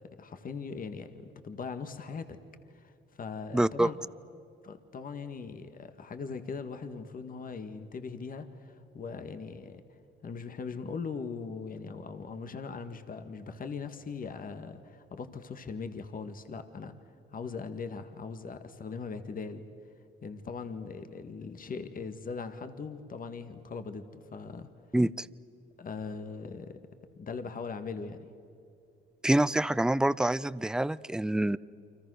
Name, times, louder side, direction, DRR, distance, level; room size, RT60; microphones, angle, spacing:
voice 1, 0.2-2.4 2.7-2.9 3.2-4.0 4.6-9.8 10.2-16.9 17.3-19.6 20.2-24.7 25.8-26.8 27.2-28.2, left 5 dB, 45° left, 9 dB, 1.8 m, -40 dB
voice 2, 3.5-3.9 24.9-25.3 29.2-31.6, right 1 dB, 5° right, 18 dB, 0.5 m, -26 dB
29.5 x 25.0 x 6.4 m, 2.5 s
cardioid pair, 90°, 20 cm